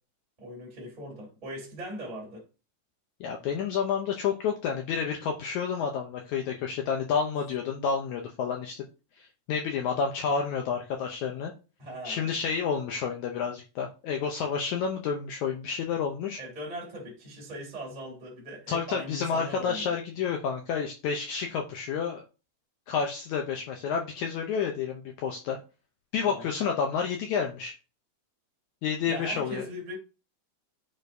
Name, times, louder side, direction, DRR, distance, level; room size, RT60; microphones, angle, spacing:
voice 1, 0.4-2.4 11.8-12.3 16.4-19.9 26.2-26.5 29.1-30.0, equal, 15° right, 2.2 m, -40 dB
voice 2, 3.2-8.8 9.2-11.5 12.0-16.4 18.7-22.2 22.9-25.6 26.1-27.7 28.8-29.7, left 6 dB, 75° left, 1.8 m, -30 dB
9.9 x 4.3 x 2.7 m
omnidirectional pair, 4.0 m